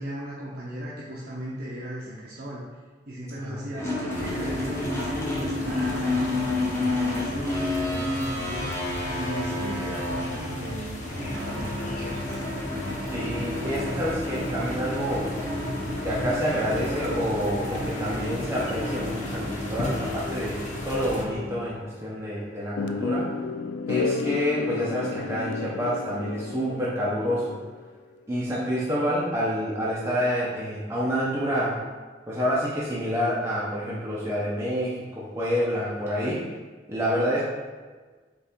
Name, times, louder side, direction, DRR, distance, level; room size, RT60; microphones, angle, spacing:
voice 1, 0.0-2.6 3.1-6.4 6.7-8.7 9.2-12.4 28.4-28.7, equal, 60° right, -6 dB, 0.6 m, -36 dB
voice 2, 3.3-3.8 13.1-15.3 16.0-23.3 23.9-27.6 28.3-31.8 32.3-36.4 36.9-37.4, equal, 15° right, -8 dB, 0.7 m, -28 dB
sound 1, 3.8-21.7, left 1 dB, 15° left, 0.8 m, -31 dB
sound 2, 4.1-21.2, left 1 dB, 45° left, 0.7 m, -37 dB
sound 3, 22.8-27.9, left 4 dB, 80° left, 0.3 m, -31 dB
4.1 x 3.4 x 3.5 m, 1.4 s
head